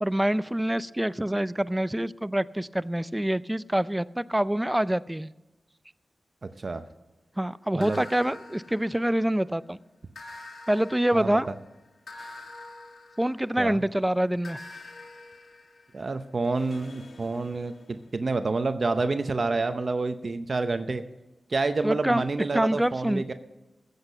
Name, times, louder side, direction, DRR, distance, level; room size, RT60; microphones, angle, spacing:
voice 1, 0.0-5.3 7.4-9.8 10.7-11.5 13.2-14.6 21.8-22.2 22.5-23.3, right 1 dB, 10° right, 17 dB, 0.4 m, -26 dB
voice 2, 7.7-8.1 11.1-11.4 13.6-13.8 15.9-21.0 21.5-23.3, right 3 dB, 55° right, 9 dB, 0.7 m, -28 dB
sound 1, 7.8-9.5 10.1-13.8 14.4-18.2, left 2 dB, 70° left, 1.6 m, -47 dB
14.5 x 8.1 x 6.6 m, 1.1 s
cardioid pair, 50°, 0 cm